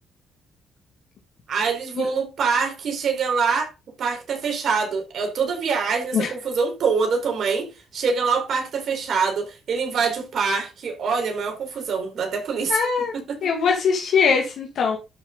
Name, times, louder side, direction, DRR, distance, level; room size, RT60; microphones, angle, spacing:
voice 1, 1.5-3.7 4.0-12.8 13.1-13.4, right 5 dB, 60° right, 4.3 m, -24 dB
voice 2, 12.7-13.1 13.4-15.0, left 5 dB, 70° left, 2.2 m, -21 dB
12.5 x 6.1 x 4.0 m
cardioid pair, 90°, 0 cm